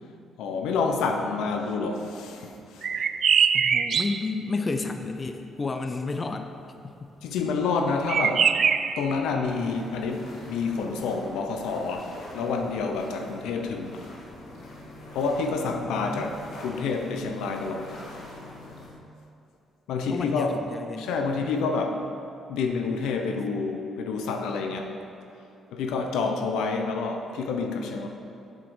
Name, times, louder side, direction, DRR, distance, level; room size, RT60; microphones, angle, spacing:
voice 1, 0.4-2.9 7.2-8.5 9.0-14.0 15.1-17.9 19.9-20.6 21.0-22.0 22.5-25.0 25.7-28.1, left 4 dB, 90° left, 4 dB, 0.8 m, -28 dB
sound 1, 2.8-4.3 8.1-9.0, right 7 dB, 55° right, 0.3 m, -22 dB
voice 2, 3.5-6.5 6.8-7.1 15.6-16.2 20.0-21.1, left 3 dB, 30° left, 7 dB, 0.5 m, -32 dB
sound 2, 9.4-18.9, left 1 dB, 70° left, 1.7 m, -44 dB
7.9 x 7.5 x 4.8 m, 2.7 s
cardioid pair, 90°, 0 cm